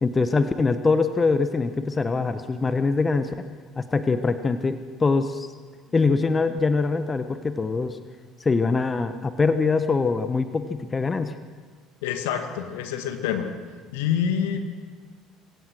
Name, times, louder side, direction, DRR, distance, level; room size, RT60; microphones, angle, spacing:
voice 1, 0.0-3.4 3.8-5.5 5.9-8.0 8.4-11.4, left 4 dB, 25° left, 10 dB, 1.1 m, -23 dB
voice 2, 12.0-13.5 13.9-14.6, left 8 dB, 75° left, 6 dB, 1.9 m, -26 dB
26.5 x 16.5 x 6.3 m, 1.5 s
hypercardioid pair, 60°, 0 cm